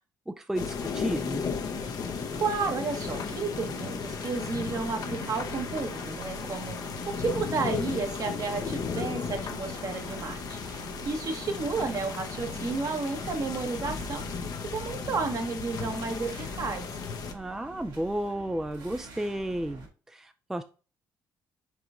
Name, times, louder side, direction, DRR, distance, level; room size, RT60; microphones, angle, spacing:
voice 1, 0.3-1.5 17.3-20.6, right 1 dB, 5° right, 0.4 m, -33 dB
sound 1, 0.6-17.3, left 6 dB, 55° left, 0.7 m, -35 dB
sound 2, 0.7-19.9, right 4 dB, 65° right, 1.8 m, -45 dB
voice 2, 2.3-6.8 7.1-14.5 14.7-16.9, right 4 dB, 50° right, 1.2 m, -32 dB
4.7 x 3.9 x 2.4 m
supercardioid pair, 65°, 8 cm